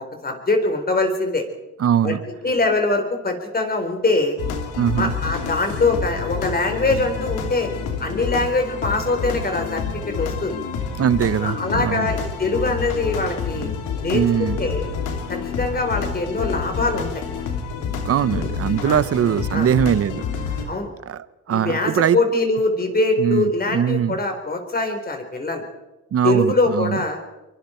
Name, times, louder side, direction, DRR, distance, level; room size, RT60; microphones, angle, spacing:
voice 1, 0.0-1.5 2.0-2.2 2.4-4.4 5.0-7.7 8.0-10.6 11.4-13.7 14.0-14.8 15.3-17.2 18.8-19.0 19.5-19.7 20.7-20.9 21.5-25.6 26.2-27.2, left 2 dB, 30° left, 5 dB, 4.2 m, -23 dB
voice 2, 1.8-2.2 4.8-5.1 11.0-12.1 14.1-14.6 18.0-20.3 21.1-22.2 23.2-24.2 26.1-27.0, right 9 dB, 50° right, 16 dB, 0.9 m, -21 dB
sound 1, 4.4-20.6, left 6 dB, 85° left, 2.9 m, -28 dB
24.0 x 23.5 x 4.5 m, 1.1 s
cardioid pair, 90°, 30 cm